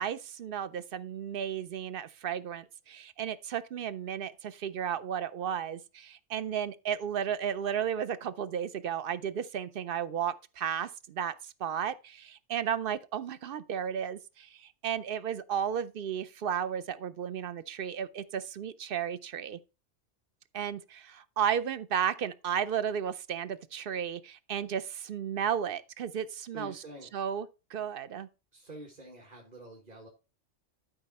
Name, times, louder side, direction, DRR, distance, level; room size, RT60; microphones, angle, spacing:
voice 1, 0.0-19.6 20.5-26.7 27.1-28.3, right 8 dB, 55° right, 0.7 m, -34 dB
voice 2, 26.5-27.1 28.5-30.1, right 1 dB, 35° right, 1.7 m, -47 dB
12.0 x 5.0 x 4.1 m
omnidirectional pair, 1.3 m